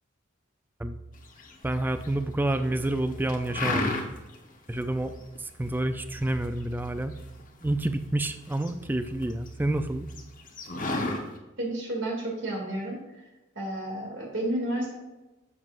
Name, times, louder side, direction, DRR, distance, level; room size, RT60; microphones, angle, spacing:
sound 1, 1.4-2.1 2.5-3.0 3.3-4.4 4.7-4.8 5.2-5.7 6.1-7.9 8.2-9.5 9.8-9.9 10.1-11.2, left 2 dB, 40° left, 1.1 m, -31 dB
voice 1, 1.6-4.2 4.7-5.1 5.4-7.1 7.6-10.1, right 1 dB, 10° right, 10 dB, 0.4 m, -29 dB
voice 2, 11.6-13.0 13.5-14.9, right 1 dB, 65° right, -1 dB, 2.5 m, -31 dB
11.0 x 7.5 x 2.5 m, 1.1 s
head